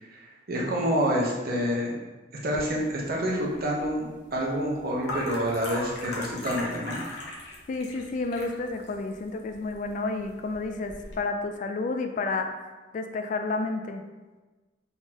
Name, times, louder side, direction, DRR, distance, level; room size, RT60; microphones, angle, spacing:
voice 1, 0.5-1.9 2.4-7.0, equal, 55° right, -2 dB, 1.0 m, -27 dB
sound 1, 2.5-11.2, left 2 dB, 65° left, 1.0 m, -40 dB
voice 2, 7.7-12.5 12.9-14.0, left 3 dB, 45° left, 6 dB, 0.3 m, -30 dB
4.2 x 3.9 x 2.9 m, 1.2 s
head